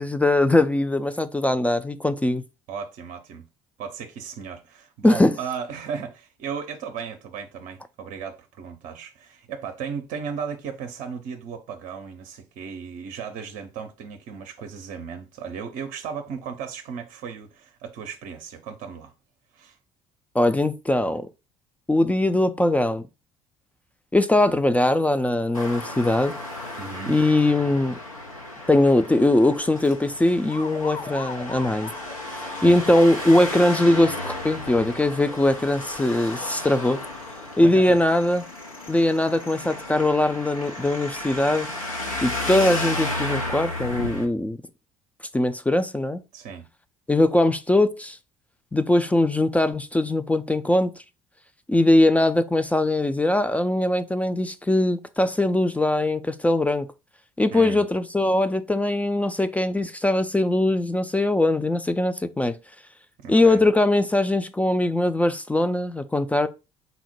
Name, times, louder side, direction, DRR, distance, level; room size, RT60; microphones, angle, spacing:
voice 1, 0.0-2.4 5.0-5.3 20.3-21.3 21.9-23.0 24.1-26.3 27.1-28.0 28.7-31.9 32.3-37.0 37.6-38.4 38.9-41.7 42.2-44.6 45.3-46.2 47.1-48.2 48.7-50.9 51.7-56.9 57.4-62.5 63.3-66.5, left 1 dB, 10° left, 0.3 m, -21 dB
voice 2, 2.7-3.4 3.8-19.1 19.5-19.8 26.8-27.2 32.5-32.8 37.6-38.0 46.3-46.7 57.5-57.8 63.2-63.6, right 6 dB, 50° right, 0.6 m, -35 dB
Traffic noise roadway noise, 25.5-44.2, left 2 dB, 90° left, 0.7 m, -33 dB
sound 1, 30.5-37.4, left 4 dB, 30° left, 0.8 m, -42 dB
3.9 x 2.0 x 4.3 m
figure-of-eight pair, 55°, 17 cm